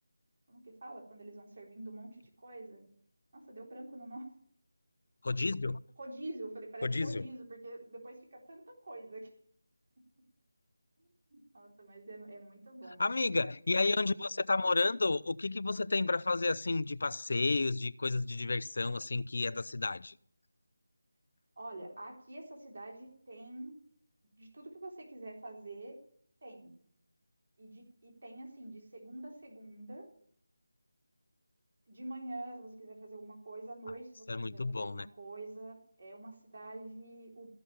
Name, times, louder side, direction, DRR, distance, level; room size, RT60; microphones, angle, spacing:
voice 1, 0.5-2.9 3.3-4.3 6.0-9.3 11.3-13.1 21.6-23.8 24.4-26.0 26.4-26.7 27.6-30.1 31.9-37.5, right 1 dB, 55° right, 0 dB, 3.8 m, -46 dB
voice 2, 5.2-5.8 6.8-7.2 13.0-20.2 34.3-35.1, left 3 dB, 55° left, 17 dB, 0.5 m, -31 dB
15.0 x 6.8 x 10.0 m, 0.62 s
figure-of-eight pair, 165°, 0 cm